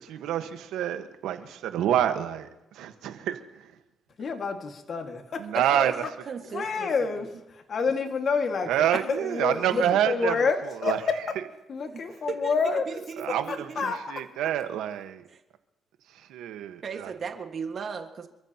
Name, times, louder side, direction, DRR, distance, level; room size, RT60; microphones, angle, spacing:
voice 1, 0.0-3.7 5.4-6.0 8.7-10.4 10.6-11.0 13.2-15.3 16.1-17.1, right 11 dB, 90° right, 1.4 m, -28 dB
voice 2, 4.2-5.4 6.5-7.3 7.7-11.2 11.7-13.0 13.8-14.0, left 5 dB, 50° left, 1.9 m, -28 dB
voice 3, 5.5-7.4 9.7-9.9 11.9-12.0 12.3-13.8 15.3-15.4 16.8-18.3, right 6 dB, 50° right, 1.7 m, -37 dB
27.5 x 14.5 x 3.0 m
cardioid pair, 90°, 0 cm